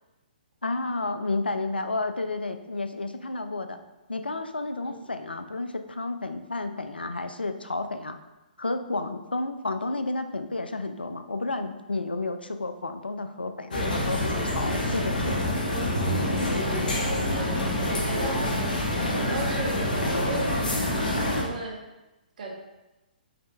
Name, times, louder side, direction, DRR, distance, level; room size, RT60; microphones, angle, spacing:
voice 1, 0.6-3.8 4.1-8.2 8.6-15.6, left 2 dB, 85° left, 8 dB, 0.3 m, -31 dB
sound 1, 13.7-21.4, left 1 dB, 60° left, 1.0 m, -26 dB
voice 2, 16.9-18.4 19.1-21.8 22.4-22.5, right 2 dB, 55° right, 0 dB, 0.9 m, -36 dB
5.0 x 4.0 x 2.3 m, 1.0 s
figure-of-eight pair, 125°, 5 cm